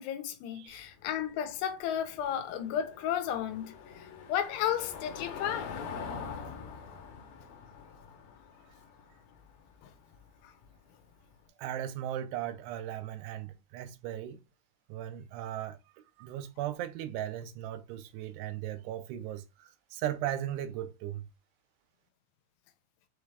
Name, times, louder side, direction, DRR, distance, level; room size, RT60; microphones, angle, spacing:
voice 1, 0.0-3.7 4.3-5.7, left 10 dB, 90° left, 2.9 m, -33 dB
Car passing by / Engine, 0.7-11.3, left 6 dB, 75° left, 2.4 m, -45 dB
voice 2, 11.6-14.4 14.9-15.8 16.2-19.4 19.9-21.3, right 11 dB, 85° right, 2.7 m, -37 dB
6.6 x 2.4 x 3.2 m
omnidirectional pair, 4.7 m